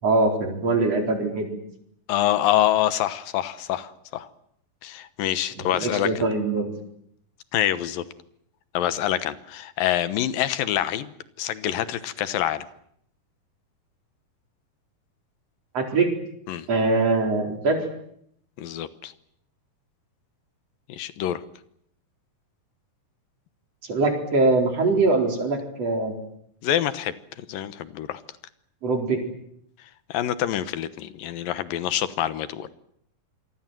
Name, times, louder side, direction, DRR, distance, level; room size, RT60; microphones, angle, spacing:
voice 1, 0.0-1.5 5.6-6.7 15.7-16.1 16.7-17.8 23.8-26.1 28.8-29.2, right 3 dB, 45° right, 3 dB, 5.2 m, -22 dB
voice 2, 2.1-4.3 4.8-6.3 7.5-8.0 8.7-12.7 16.5-16.7 18.6-19.1 20.9-21.4 26.6-28.2 30.1-32.7, left 12 dB, 80° left, 13 dB, 2.9 m, -26 dB
27.0 x 22.5 x 7.7 m, 0.71 s
omnidirectional pair, 4.0 m